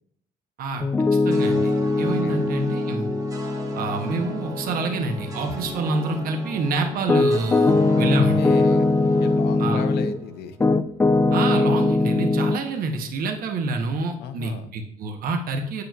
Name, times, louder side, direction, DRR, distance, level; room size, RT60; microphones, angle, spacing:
Piano, 0.8-10.2 10.6-12.6, left 3 dB, 15° left, 0.3 m, -22 dB
voice 1, 1.2-3.1 3.7-8.5 9.6-9.8 11.3-15.8, right 3 dB, 60° right, 4 dB, 0.9 m, -27 dB
sound 1, 1.3-10.6, right 2 dB, 20° right, 0.9 m, -37 dB
voice 2, 2.0-2.5 8.0-10.7 14.2-14.7, left 7 dB, 75° left, 10 dB, 0.7 m, -36 dB
7.7 x 6.7 x 2.3 m, 0.67 s
cardioid pair, 110°, 17 cm